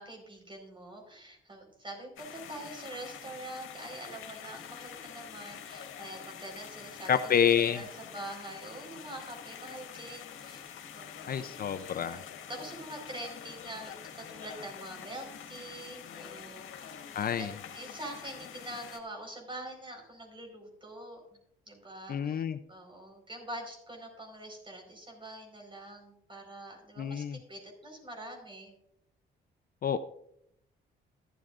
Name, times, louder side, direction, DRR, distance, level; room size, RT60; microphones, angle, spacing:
voice 1, 0.0-7.3 7.7-11.5 11.9-17.0 17.4-21.2 21.7-28.7, right 1 dB, 25° right, 2 dB, 4.7 m, -45 dB
sound 1, 2.2-19.0, left 8 dB, 80° left, 1.7 m, -46 dB
voice 2, 7.1-7.8 11.3-12.2 17.1-17.5 22.1-22.6 27.0-27.4 29.8-30.0, left 8 dB, 50° left, 11 dB, 0.6 m, -28 dB
14.5 x 12.5 x 2.5 m, 0.75 s
cardioid pair, 90°, 20 cm